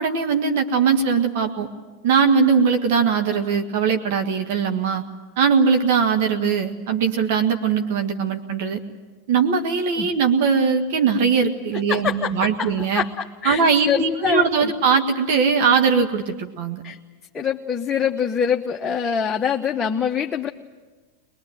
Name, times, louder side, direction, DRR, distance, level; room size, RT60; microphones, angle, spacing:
voice 1, 0.0-1.7 2.0-5.0 5.4-8.8 9.3-13.0 13.5-16.8, right 5 dB, 60° right, 5 dB, 1.7 m, -20 dB
voice 2, 11.9-14.7 16.8-17.0 17.3-20.5, left 7 dB, 20° left, 1 dB, 1.1 m, -25 dB
22.0 x 21.5 x 9.2 m, 1.3 s
hypercardioid pair, 95°, 0 cm